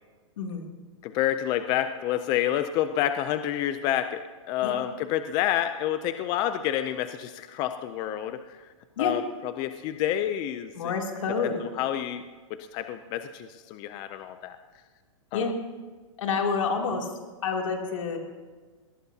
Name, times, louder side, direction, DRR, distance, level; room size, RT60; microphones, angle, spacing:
voice 1, 0.4-0.7 4.6-4.8 9.0-9.1 10.7-11.6 15.3-15.5 16.2-17.1 17.4-18.2, left 5 dB, 75° left, 1 dB, 2.9 m, -28 dB
voice 2, 1.0-8.7 9.0-10.9 11.4-12.2 12.5-14.6 15.3-15.5, left 11 dB, 25° left, 10 dB, 0.5 m, -29 dB
22.5 x 18.5 x 2.8 m, 1.4 s
hypercardioid pair, 155°, 17 cm